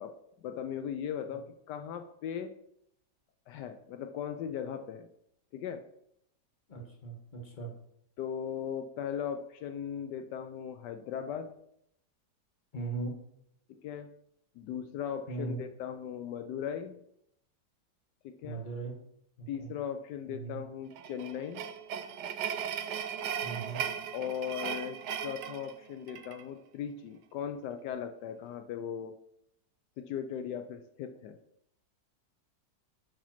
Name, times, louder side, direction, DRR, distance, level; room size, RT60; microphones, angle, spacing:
voice 1, 0.0-2.6 3.5-5.1 5.5-5.8 8.2-11.5 13.7-14.1 14.6-17.0 18.2-18.6 19.5-21.6 24.1-29.1 30.0-31.4, left 8 dB, 80° left, 8 dB, 1.2 m, -38 dB
voice 2, 6.7-7.7 12.7-13.2 15.3-15.6 18.4-19.0 19.4-19.7 20.3-20.6 23.4-23.8, right 3 dB, 30° left, 1 dB, 1.3 m, -38 dB
sound 1, 20.9-26.4, right 8 dB, 75° right, 1.2 m, -37 dB
7.2 x 4.4 x 5.8 m, 0.75 s
omnidirectional pair, 1.9 m